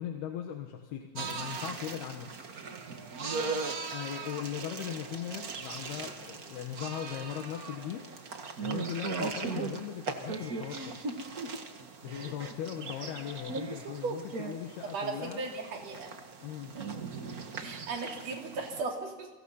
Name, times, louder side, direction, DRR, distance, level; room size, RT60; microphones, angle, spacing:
voice 1, 0.0-2.3 3.9-8.1 8.6-11.0 12.0-15.4 16.4-16.7, left 10 dB, 90° left, 3 dB, 3.5 m, -39 dB
sound 1, 1.2-18.8, right 4 dB, 70° right, 0.8 m, -39 dB
voice 2, 3.3-3.6 14.8-16.1 16.7-16.9 17.6-19.3, right 3 dB, 45° right, 1 dB, 4.2 m, -37 dB
30.0 x 24.0 x 5.7 m, 1.3 s
omnidirectional pair, 4.4 m